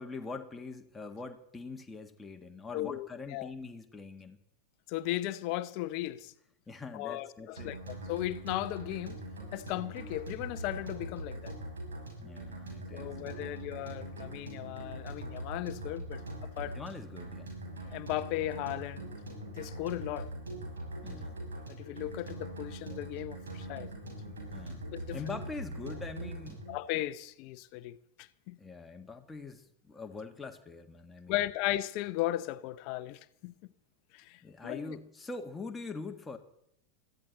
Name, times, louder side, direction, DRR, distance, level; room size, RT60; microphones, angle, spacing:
voice 1, 0.0-4.4 6.7-7.8 12.2-13.5 16.7-17.5 21.0-21.4 24.5-24.8 25.1-26.7 28.6-31.5 34.4-36.4, left 4 dB, 10° left, 1.7 m, -43 dB
voice 2, 2.7-3.5 4.9-6.3 6.9-9.2 9.5-11.6 12.9-16.8 17.8-19.1 19.6-20.3 21.7-23.9 24.9-25.2 26.7-28.6 31.3-33.5 34.1-35.0, left 15 dB, 45° left, 0.8 m, -36 dB
sound 1, 7.6-26.8, right 1 dB, 70° right, 7.1 m, -42 dB
21.5 x 14.5 x 4.1 m
figure-of-eight pair, 90°, 0 cm